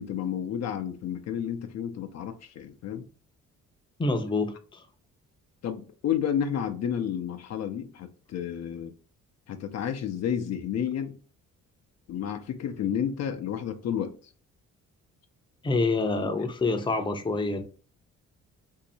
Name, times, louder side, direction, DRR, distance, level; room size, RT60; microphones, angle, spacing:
voice 1, 0.0-3.1 5.6-8.9 9.5-11.2 12.1-14.3, left 9 dB, 60° left, 0.5 m, -31 dB
voice 2, 4.0-4.8 15.6-17.6, left 3 dB, 15° left, 0.6 m, -27 dB
2.7 x 2.6 x 4.1 m
cardioid pair, 90°, 30 cm